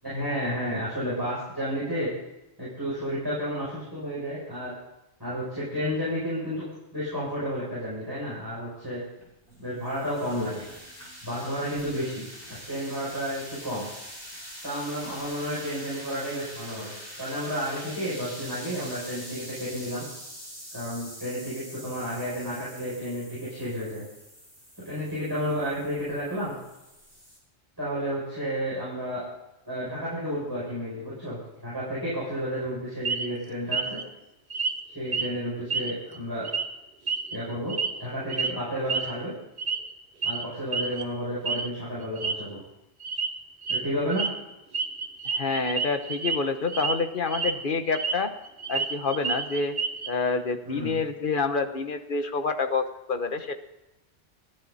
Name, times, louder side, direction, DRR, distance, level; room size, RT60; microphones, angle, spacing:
voice 1, 0.0-2.1 2.6-4.7 5.2-6.6 6.9-9.0 9.6-10.6 11.2-13.9 14.6-20.0 20.7-24.0 24.8-26.5 27.8-29.2 29.7-34.0 34.9-36.5 37.3-39.3 40.2-42.6 43.7-44.2 50.7-51.0, equal, 20° right, -9 dB, 7.3 m, -31 dB
sound 1, 9.2-27.4, equal, 15° left, 7.7 m, -44 dB
sound 2, 33.0-33.3 33.7-34.0 34.5-34.8 35.1-35.3 35.7-36.2 36.4-36.6 37.1-38.0 38.3-38.5 38.9-39.1 39.6-39.9 40.2-40.4 40.7-41.0 41.5-41.7 42.0-42.3 43.0-43.3 43.6-43.8 44.1-44.3 44.7-46.4 46.7-46.9 47.3-48.2 48.4-50.1, right 5 dB, 50° right, 1.2 m, -29 dB
voice 2, 45.3-48.3 48.7-49.8 50.1-53.6, left 4 dB, 50° left, 8 dB, 1.2 m, -28 dB
30.0 x 10.5 x 4.2 m, 0.94 s
omnidirectional pair, 1.2 m